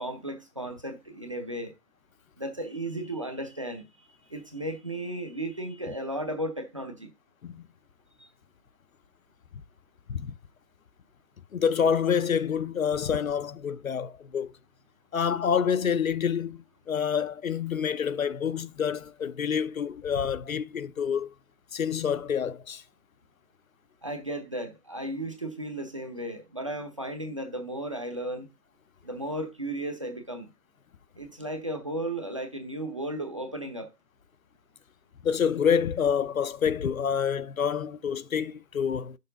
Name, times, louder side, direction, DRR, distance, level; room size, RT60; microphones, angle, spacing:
voice 1, 0.0-1.7 2.4-7.1 8.2-8.3 24.0-28.5 29.0-30.5 31.2-33.9, right 1 dB, 20° right, 0.7 m, -35 dB
voice 2, 11.5-14.5 15.1-21.3 21.7-22.8 35.2-39.2, left 7 dB, 60° left, 0.6 m, -27 dB
8.8 x 6.6 x 3.8 m
hypercardioid pair, 160°, 47 cm